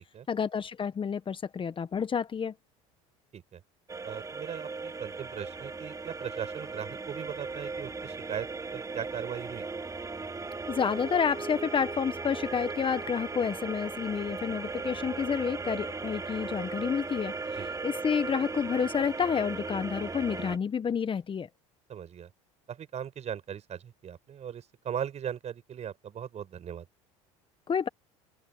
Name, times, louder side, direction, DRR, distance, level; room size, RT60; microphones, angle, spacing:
voice 1, 0.3-2.5 10.7-21.5 27.7-27.9, left 7 dB, 30° left, 1.4 m, -29 dB
sound 1, 3.9-20.6, right 4 dB, 20° right, 3.9 m, -37 dB
voice 2, 4.0-8.5 8.7-9.7 17.5-17.7 21.9-22.3 22.7-26.9, right 9 dB, 40° right, 6.4 m, -38 dB
hypercardioid pair, 80°, 17 cm